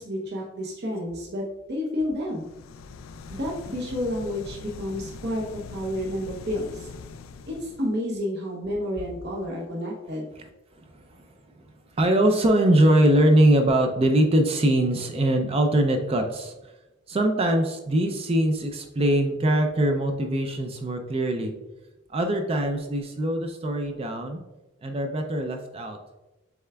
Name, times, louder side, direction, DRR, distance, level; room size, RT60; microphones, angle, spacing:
voice 1, 0.0-2.5 3.4-6.9 7.5-10.3, left 1 dB, 55° right, -2 dB, 0.8 m, -30 dB
sound 1, 2.2-8.0, left 4 dB, 75° left, 0.3 m, -42 dB
voice 2, 10.3-11.2 11.5-11.7 11.9-16.7 17.1-21.5 22.1-24.4 24.8-26.0, right 1 dB, 30° right, 4 dB, 0.4 m, -22 dB
7.0 x 3.3 x 2.3 m, 1.0 s
head